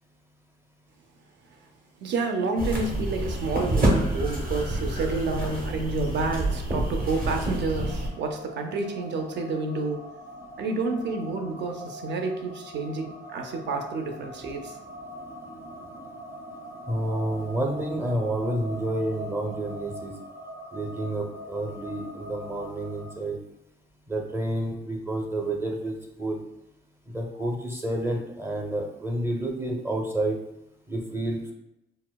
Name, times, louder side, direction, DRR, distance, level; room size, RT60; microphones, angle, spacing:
voice 1, 2.0-10.0 10.6-14.8, right 3 dB, 60° right, 4 dB, 0.6 m, -29 dB
sound 1, 2.6-8.1, right 1 dB, 45° right, 1.1 m, -27 dB
sound 2, 6.7-23.1, equal, 80° right, 1.3 m, -42 dB
voice 2, 16.9-20.1 20.7-23.4 24.1-26.4 27.1-30.4 30.9-31.5, right 1 dB, 10° right, 1 dB, 0.6 m, -29 dB
4.3 x 2.1 x 2.2 m, 0.86 s
cardioid pair, 90°, 20 cm